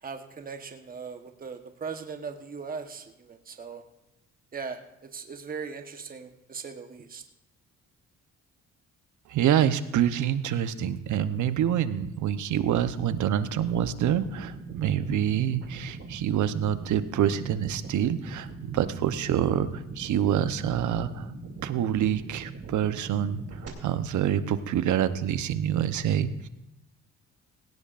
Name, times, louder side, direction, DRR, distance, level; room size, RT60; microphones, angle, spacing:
voice 1, 0.0-3.8 4.5-7.2, right 5 dB, 30° right, 5 dB, 1.1 m, -39 dB
voice 2, 9.3-21.3 21.6-23.4 23.8-26.5, right 10 dB, 75° right, 12 dB, 0.9 m, -26 dB
sound 1, 13.7-23.7, right 3 dB, 55° right, 2.7 m, -42 dB
17.5 x 17.0 x 2.5 m, 0.93 s
cardioid pair, 90°, 30 cm